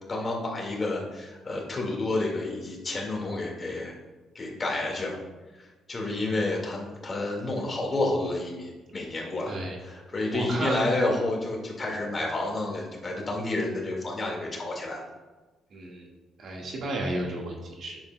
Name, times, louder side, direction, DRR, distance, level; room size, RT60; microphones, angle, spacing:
voice 1, 0.1-3.9 4.4-5.2 5.9-9.5 9.8-15.0, left 2 dB, 30° left, -1 dB, 1.9 m, -30 dB
voice 2, 6.0-6.3 9.5-9.8 10.3-10.8 15.7-16.1 16.4-18.0, right 1 dB, 60° right, -1 dB, 1.7 m, -33 dB
10.0 x 7.2 x 2.3 m, 1.2 s
cardioid pair, 95°, 0 cm